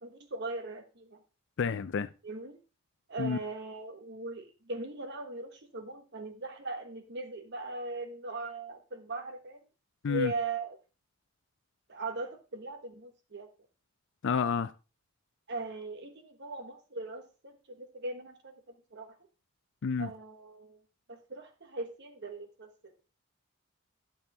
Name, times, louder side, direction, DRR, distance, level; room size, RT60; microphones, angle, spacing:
voice 1, 0.0-1.2 2.2-2.5 3.1-9.6 10.1-10.8 11.9-13.5 15.5-19.1 20.0-20.8 21.1-23.0, right 2 dB, 55° right, 1.4 m, -39 dB
voice 2, 1.6-2.1 3.2-3.4 10.0-10.3 14.2-14.7 19.8-20.1, left 5 dB, 60° left, 0.4 m, -29 dB
12.0 x 7.0 x 3.5 m
head